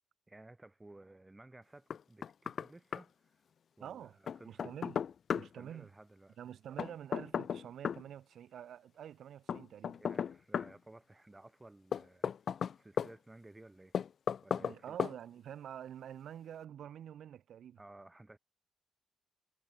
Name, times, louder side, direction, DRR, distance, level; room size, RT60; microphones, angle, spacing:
voice 1, 0.3-3.4 3.8-4.7 5.4-6.4 10.0-12.3 12.8-14.0 14.4-15.0 17.8-18.4, right 2 dB, 15° right, 5.9 m, -56 dB
Knock, 1.9-2.7 2.9-3.0 4.3-5.5 6.8-8.0 9.5-10.7 11.9-13.1 13.9-14.7 15.0-15.2, left 7 dB, 60° left, 0.6 m, -35 dB
voice 2, 3.8-4.2 4.5-5.0 5.3-5.9 6.4-10.0 14.6-17.8, right 10 dB, 75° right, 3.5 m, -47 dB
cardioid pair, 100°, 0 cm